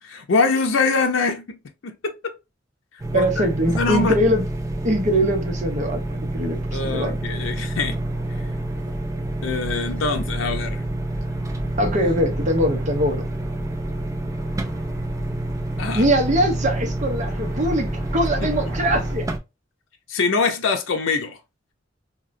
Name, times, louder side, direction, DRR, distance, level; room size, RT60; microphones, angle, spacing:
voice 1, 0.0-2.3 3.1-4.2 6.7-8.0 9.4-10.8 15.8-16.1 18.4-18.5 20.1-21.4, left 4 dB, 85° left, 0.6 m, -24 dB
sound 1, 3.0-19.4, right 1 dB, 15° right, 0.4 m, -28 dB
voice 2, 3.1-4.4 4.8-7.2 11.8-13.2 15.9-19.3, equal, 40° right, 0.7 m, -22 dB
sound 2, 4.2-19.1, equal, 10° left, 1.9 m, -36 dB
3.0 x 2.8 x 2.6 m
head